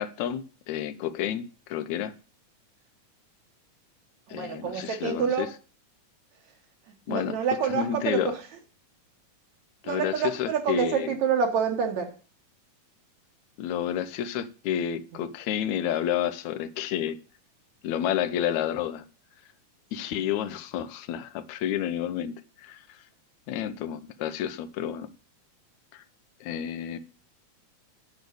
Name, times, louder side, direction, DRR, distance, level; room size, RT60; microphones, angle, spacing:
voice 1, 0.0-2.1 4.3-5.5 7.1-7.4 7.7-8.3 9.8-11.1 13.6-17.2 17.8-19.0 19.9-22.9 23.5-25.1 25.9-26.0 26.4-27.0, left 10 dB, 70° left, 13 dB, 1.9 m, -30 dB
voice 2, 4.3-5.5 6.9-8.5 9.8-12.1, right 7 dB, 65° right, 4 dB, 2.3 m, -27 dB
8.4 x 7.0 x 7.9 m, 0.38 s
omnidirectional pair, 3.9 m